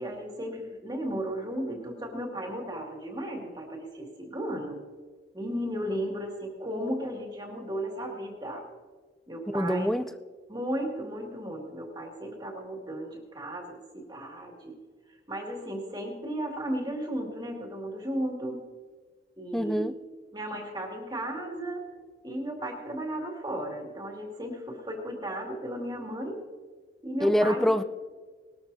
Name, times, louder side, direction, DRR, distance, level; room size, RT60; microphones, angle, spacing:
voice 1, 0.0-4.8 5.3-8.6 9.3-9.9 10.5-14.8 15.3-18.6 19.4-19.9 20.3-21.9 22.2-26.4 27.0-27.6, right 1 dB, 25° right, 1 dB, 2.1 m, -35 dB
voice 2, 9.5-10.1 19.5-19.9 27.2-27.8, equal, ahead, 11 dB, 0.4 m, -24 dB
19.5 x 13.0 x 2.7 m, 1.5 s
head